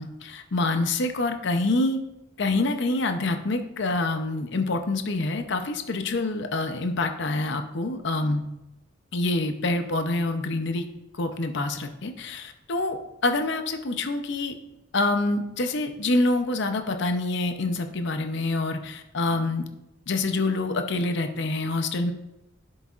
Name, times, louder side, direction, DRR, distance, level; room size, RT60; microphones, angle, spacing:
voice 1, 0.0-2.0 2.4-8.4 9.1-10.9 11.2-14.5 14.9-19.6 20.1-22.1, left 2 dB, 60° left, 6 dB, 0.7 m, -26 dB
10.5 x 8.0 x 2.5 m, 0.91 s
head